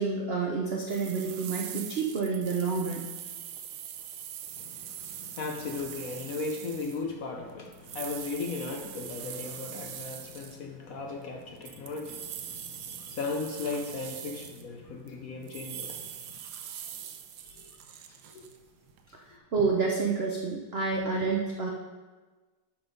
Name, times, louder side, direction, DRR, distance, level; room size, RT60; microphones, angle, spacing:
voice 1, 0.0-3.1 19.5-21.7, right 4 dB, 60° right, 0 dB, 0.6 m, -29 dB
sound 1, 0.9-10.6 11.4-15.1 15.4-19.3, right 9 dB, 80° right, 1.4 m, -42 dB
voice 2, 4.6-16.0 17.4-17.7 18.3-18.5, left 4 dB, 60° left, 2 dB, 1.0 m, -37 dB
11.5 x 4.1 x 5.2 m, 1.3 s
omnidirectional pair, 2.1 m